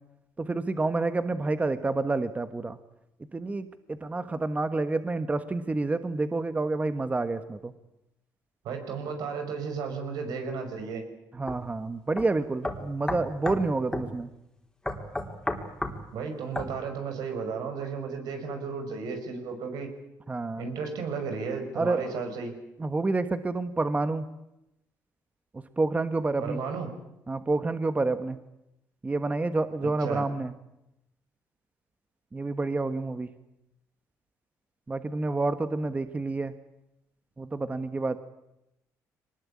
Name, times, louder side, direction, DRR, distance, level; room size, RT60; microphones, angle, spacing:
voice 1, 0.4-2.8 3.3-7.7 11.4-14.3 20.3-20.6 21.7-22.0 22.8-24.2 25.8-26.6 27.3-28.4 29.0-30.5 32.3-33.3 34.9-36.5 37.4-38.2, right 3 dB, 20° right, 10 dB, 1.4 m, -28 dB
voice 2, 8.6-11.0 16.1-19.9 20.6-22.5 26.4-26.9 29.8-30.2, right 5 dB, 85° right, 6 dB, 5.9 m, -34 dB
sound 1, 11.5-11.6 12.2-12.3 12.6-13.6 13.9-14.1 14.9-16.0 16.6-16.7, left 1 dB, 10° left, 3.8 m, -31 dB
23.5 x 20.0 x 8.6 m, 0.87 s
cardioid pair, 95°, 7 cm